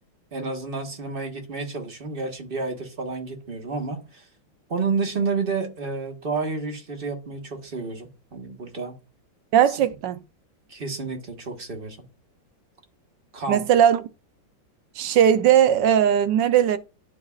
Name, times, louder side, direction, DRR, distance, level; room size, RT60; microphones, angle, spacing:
voice 1, 0.3-4.2 4.7-8.9 9.7-9.8 10.7-12.0 13.3-13.6, right 4 dB, 30° right, 1.4 m, -30 dB
voice 2, 9.5-10.2 13.5-14.0 15.0-16.8, right 9 dB, 70° right, 1.2 m, -18 dB
11.5 x 4.8 x 2.4 m
omnidirectional pair, 2.1 m